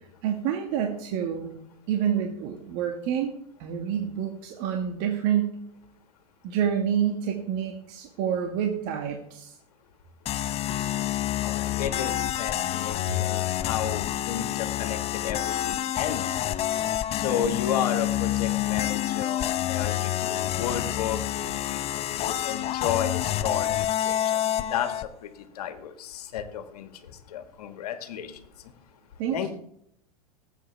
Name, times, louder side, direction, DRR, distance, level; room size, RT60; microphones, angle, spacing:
voice 1, 0.2-1.6 1.9-3.3 3.6-5.6 6.4-9.6 13.1-13.2 29.2-29.5, right 9 dB, 55° right, 3 dB, 1.8 m, -28 dB
sound 1, 10.2-25.1, left 12 dB, 30° left, 0.6 m, -28 dB
voice 2, 11.4-16.4 17.1-28.7 29.3-29.5, left 9 dB, 75° left, 8 dB, 1.8 m, -33 dB
18.5 x 8.3 x 3.4 m, 0.72 s
hypercardioid pair, 105°, 20 cm